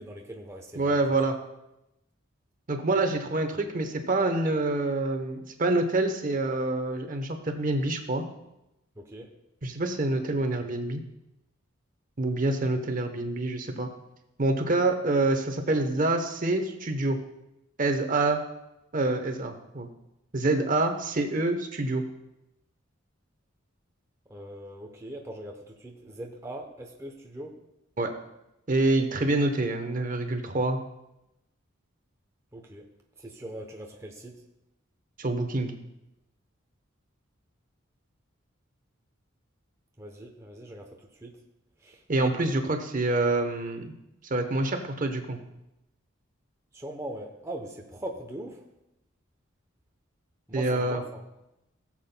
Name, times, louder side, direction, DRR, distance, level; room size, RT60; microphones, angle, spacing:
voice 1, 0.0-1.0 9.0-9.3 24.3-27.6 32.5-32.8 33.2-34.4 40.0-41.4 41.8-42.0 46.7-48.6 50.5-51.3, right 1 dB, 15° right, 1 dB, 0.8 m, -41 dB
voice 2, 0.7-1.4 2.7-8.2 9.6-11.0 12.2-13.9 14.4-17.2 17.8-18.4 18.9-19.9 20.3-22.1 28.0-28.1 28.7-30.8 35.2-35.8 42.1-43.9 44.2-45.4 50.5-51.0, right 2 dB, 40° right, 6 dB, 0.9 m, -26 dB
18.0 x 7.4 x 2.2 m, 0.89 s
head